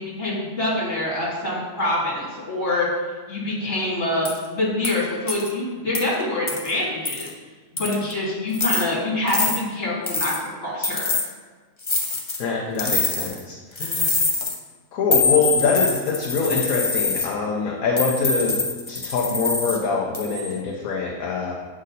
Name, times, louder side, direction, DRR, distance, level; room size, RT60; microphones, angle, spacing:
voice 1, 0.0-2.9 3.3-7.3 7.7-10.3 10.6-11.1, left 1 dB, 45° left, -6 dB, 2.9 m, -25 dB
sound 1, 4.2-4.4 4.8-5.0 5.3-5.5 5.9-6.0 6.5-6.7 7.1-7.3 7.8-8.1 8.5-8.8 9.3-9.6 10.1-10.4 10.8-11.3 11.8-12.4 12.8-13.4 13.8-14.6 15.1-17.3 18.0-19.8 20.1-20.5, left 3 dB, 25° left, 0.6 m, -24 dB
voice 2, 12.4-13.5 13.8-14.1 14.9-21.5, left 4 dB, 65° left, -1 dB, 1.2 m, -24 dB
7.8 x 6.5 x 4.1 m, 1.4 s
omnidirectional pair, 1.7 m